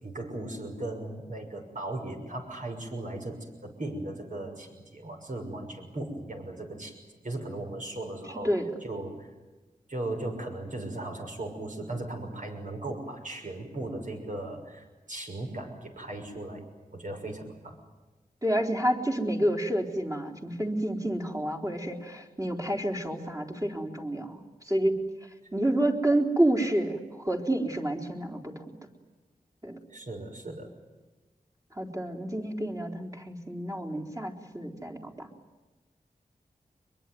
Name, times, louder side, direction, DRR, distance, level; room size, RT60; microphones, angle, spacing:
voice 1, 0.0-7.0 7.2-8.5 8.8-9.3 9.9-16.6 16.9-17.8 29.9-30.7, right 2 dB, 60° right, 3 dB, 6.4 m, -37 dB
voice 2, 18.4-24.4 24.7-24.9 25.5-28.6 29.6-29.8 31.8-35.3, right 1 dB, 20° right, 2 dB, 4.1 m, -29 dB
24.5 x 23.0 x 9.4 m, 1.2 s
wide cardioid pair, 75°, 15 cm